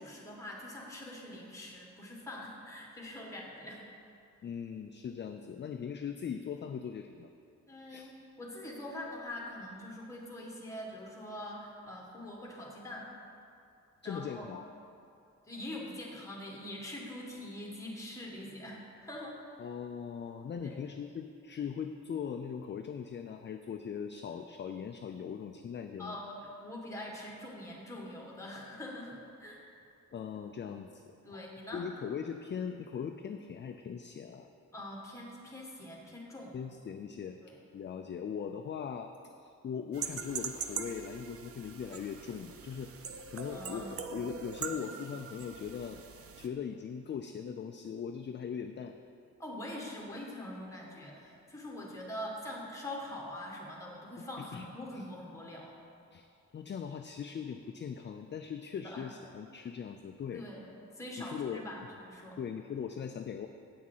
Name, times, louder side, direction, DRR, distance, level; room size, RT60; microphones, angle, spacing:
voice 1, 0.0-3.9 7.7-8.1 8.4-13.1 14.0-14.5 15.4-19.4 20.6-20.8 26.0-29.6 31.2-31.8 34.7-36.5 37.4-37.6 43.5-44.1 49.4-55.8 58.7-59.1 60.3-60.7 60.9-62.4, left 1 dB, 10° left, -2 dB, 1.6 m, -44 dB
voice 2, 4.4-7.3 7.9-8.1 14.0-14.6 19.6-26.2 30.1-34.5 36.5-37.4 37.7-39.1 39.4-42.9 43.3-46.0 46.4-49.0 54.4-54.7 54.9-55.1 56.1-56.3 56.5-60.4 61.2-61.7 62.4-63.5, left 7 dB, 40° left, 6 dB, 0.4 m, -40 dB
sound 1, 39.9-46.5, right 6 dB, 50° right, 0.6 m, -42 dB
8.5 x 6.2 x 7.3 m, 2.5 s
wide cardioid pair, 160°, 31 cm